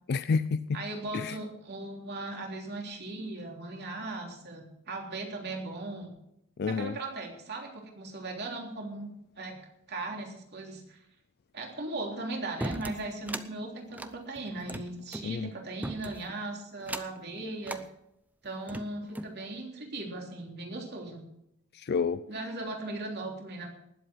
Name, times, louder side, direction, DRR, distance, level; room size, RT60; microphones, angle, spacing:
voice 1, 0.1-0.8 1.1-1.4 6.6-6.9 15.2-15.5 21.7-22.2, left 5 dB, 50° left, 0.4 m, -29 dB
voice 2, 0.7-6.1 6.7-9.1 9.4-9.6 9.9-11.0 11.5-17.8 18.4-21.2 22.3-23.7, right 2 dB, 55° right, 3.4 m, -38 dB
sound 1, 12.6-13.5 13.9-15.3 15.8-16.3 16.8-17.2 17.6-17.9 18.4-19.4, right 1 dB, 10° right, 0.7 m, -38 dB
19.5 x 8.0 x 6.2 m
head